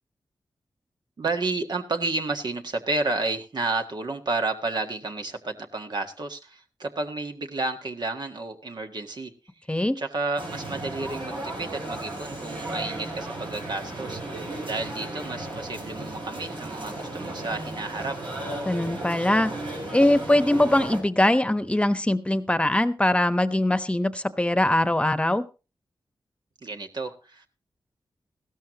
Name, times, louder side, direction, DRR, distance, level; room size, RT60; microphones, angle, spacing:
voice 1, 1.2-9.3 9.9-18.2 26.6-27.5, right 3 dB, 60° right, 5 dB, 1.5 m, -31 dB
sound 1, 10.4-21.0, right 2 dB, 85° right, 5.3 m, -35 dB
voice 2, 18.6-19.5 19.9-25.4, left 1 dB, 15° left, 12 dB, 1.1 m, -22 dB
16.0 x 13.0 x 3.0 m, 0.31 s
cardioid pair, 55°, 8 cm